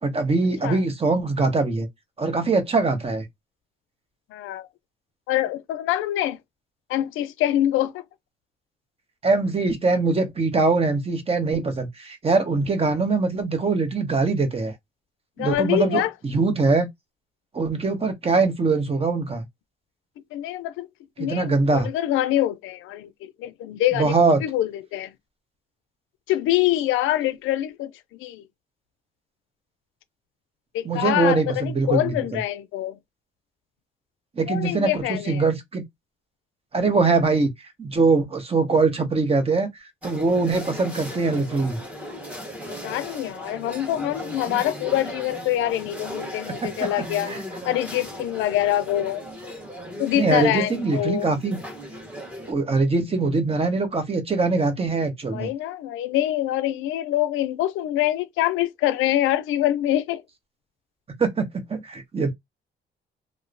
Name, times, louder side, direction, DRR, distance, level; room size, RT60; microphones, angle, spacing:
voice 1, 0.0-1.9 2.2-3.3 9.2-14.7 15.4-16.9 17.5-19.5 21.2-21.9 23.9-24.4 30.8-32.4 34.4-35.8 36.7-37.5 37.8-39.7 40.0-41.8 46.5-46.7 47.3-47.4 50.1-51.6 52.5-55.5 61.2-62.3, right 3 dB, 30° right, 0.9 m, -22 dB
voice 2, 4.3-4.7 5.3-6.4 6.9-8.0 15.4-16.1 20.3-20.9 21.2-24.1 24.4-25.1 26.3-27.9 28.2-28.4 30.7-33.0 34.5-35.4 42.6-47.3 47.6-49.2 50.0-51.3 55.3-60.2, left 13 dB, 90° left, 0.4 m, -25 dB
sound 1, 40.0-52.5, equal, 5° right, 1.1 m, -37 dB
2.9 x 2.0 x 2.5 m
cardioid pair, 90°, 20 cm